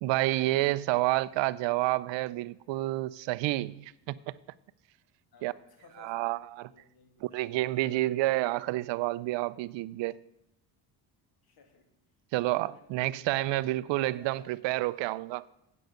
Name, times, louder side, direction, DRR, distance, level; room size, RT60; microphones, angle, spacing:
voice 1, 0.0-4.3 5.4-5.5 6.0-6.7 7.2-10.2 12.3-15.4, right 17 dB, 80° right, 0.6 m, -29 dB
voice 2, 5.3-6.2 6.7-8.2 11.4-11.9 12.5-13.7 14.1-14.5, left 4 dB, 55° left, 2.4 m, -57 dB
9.6 x 7.9 x 6.4 m
cardioid pair, 110°, 44 cm